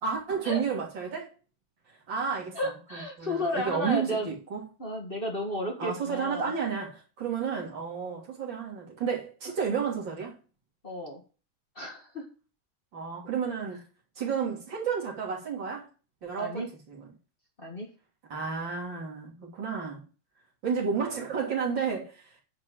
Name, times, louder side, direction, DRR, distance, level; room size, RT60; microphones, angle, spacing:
voice 1, 0.0-1.3 2.1-4.6 5.8-10.4 12.9-13.8 14.2-15.9 16.2-17.0 18.3-20.0 20.6-22.1, right 6 dB, 65° right, 3.5 m, -31 dB
voice 2, 2.5-4.3 4.8-6.5 10.8-11.2 11.8-12.3 16.4-16.7 17.6-17.9 21.8-21.9, left 1 dB, 25° left, 2.0 m, -33 dB
9.5 x 4.7 x 7.4 m
omnidirectional pair, 2.2 m